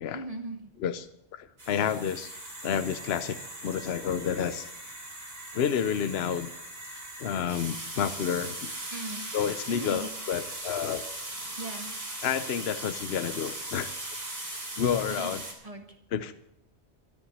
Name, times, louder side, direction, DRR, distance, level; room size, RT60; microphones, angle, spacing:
voice 1, 0.1-0.7 8.9-9.2 9.7-10.1 11.6-11.9 15.1-16.0, right 2 dB, 35° right, 5 dB, 1.8 m, -39 dB
voice 2, 0.8-2.3 2.6-3.4 3.6-4.7 5.5-6.5 7.2-8.7 9.3-11.0 12.2-13.9 14.5-15.4 16.1-16.3, left 8 dB, 70° left, 11 dB, 0.9 m, -30 dB
sound 1, 1.6-15.5, right 1 dB, 65° right, 3.7 m, -39 dB
13.0 x 10.0 x 8.5 m, 0.80 s
omnidirectional pair, 1.1 m